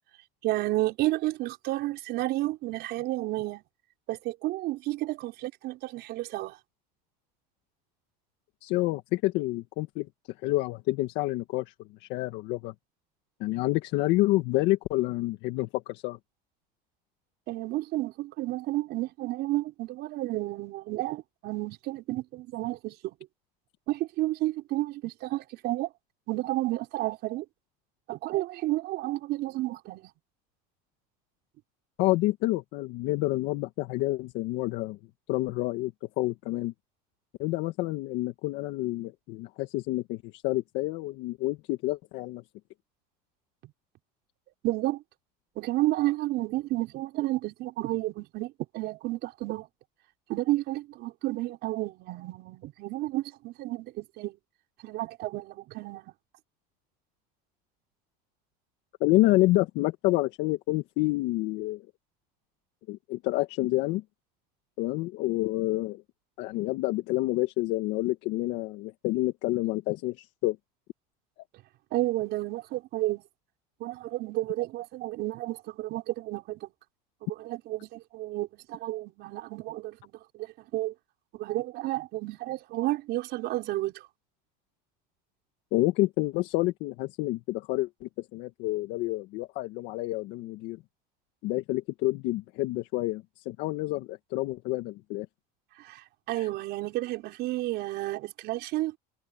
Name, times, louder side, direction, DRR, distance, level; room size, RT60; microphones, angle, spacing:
voice 1, 0.4-3.6 4.1-6.6 17.5-23.1 23.9-25.9 26.3-27.4 28.1-30.1 44.6-45.0 45.5-49.7 50.3-54.4 54.8-56.1 71.9-73.2 73.8-76.7 77.2-80.9 81.3-84.1 95.8-99.0, right 17 dB, 55° right, 5.1 m, -31 dB
voice 2, 8.6-10.1 10.4-11.7 12.0-12.7 13.4-16.2 32.0-35.0 35.3-36.7 37.4-42.4 59.0-61.8 62.9-64.0 64.8-66.0 66.4-70.6 85.7-90.8 91.4-95.2 96.4-96.5, left 19 dB, 65° left, 1.7 m, -28 dB
supercardioid pair, 125°, 20 cm